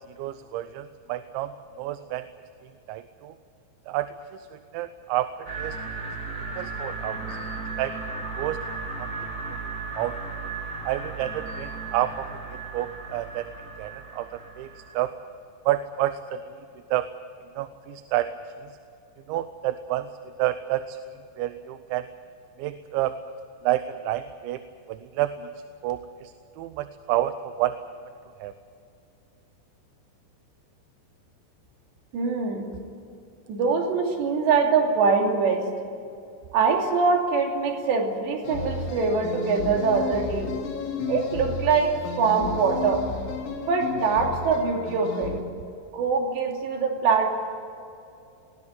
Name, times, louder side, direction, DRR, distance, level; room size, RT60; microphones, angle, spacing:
voice 1, 0.0-2.3 2.9-3.3 3.9-4.5 4.7-5.8 6.6-7.3 7.8-7.9 8.4-8.6 9.0-9.1 9.5-9.6 10.0-10.2 10.8-13.5 13.8-14.7 14.9-15.1 15.7-16.4 16.9-17.1 17.6-18.3 19.3-20.1 20.4-21.0 21.4-22.1 22.6-23.2 23.6-24.6 24.9-25.5 25.8-27.8 28.4-28.5, right 14 dB, 90° right, 11 dB, 3.1 m, -29 dB
sound 1, 5.4-14.9, right 3 dB, 25° right, 2.2 m, -35 dB
voice 2, 32.1-32.7 33.5-35.7 36.5-40.5 41.1-43.0 43.6-45.3 45.9-47.4, right 5 dB, 70° right, 2 dB, 4.8 m, -23 dB
sound 2, 38.4-45.4, left 5 dB, 85° left, 4.5 m, -33 dB
20.5 x 18.5 x 9.6 m, 2.6 s
omnidirectional pair, 5.2 m